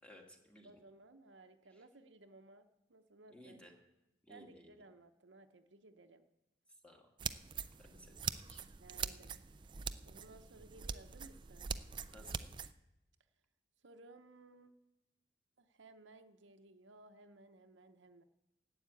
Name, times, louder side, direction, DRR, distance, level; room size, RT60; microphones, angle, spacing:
voice 1, 0.0-0.8 1.7-1.8 3.3-3.7 4.2-4.8 6.8-7.1 7.8-8.6 8.9-9.0 12.1-12.5, equal, 5° left, 1 dB, 1.8 m, -58 dB
voice 2, 0.6-3.6 4.3-6.2 8.8-9.3 10.0-11.7 13.8-14.8 15.6-18.2, right 2 dB, 70° right, 7 dB, 0.8 m, -59 dB
sound 1, 7.2-12.7, right 6 dB, 25° right, 0.4 m, -43 dB
12.0 x 8.8 x 8.4 m, 0.93 s
head